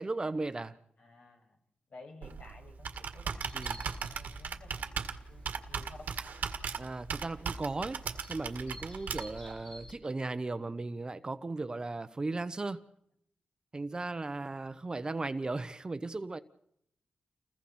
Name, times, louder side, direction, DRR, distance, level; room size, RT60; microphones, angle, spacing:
voice 1, 0.0-0.8 3.5-3.8 6.7-8.0 8.3-12.8 13.7-16.4, right 3 dB, 30° right, 1.1 m, -36 dB
voice 2, 1.0-1.6 1.9-5.0 5.3-6.1, left 3 dB, 60° left, 6.7 m, -54 dB
Computer keyboard, 2.2-9.5, right 6 dB, 80° right, 1.8 m, -38 dB
sound 1, 3.4-9.9, left 1 dB, 35° left, 4.7 m, -52 dB
30.0 x 21.5 x 4.4 m
cardioid pair, 80°, 3 cm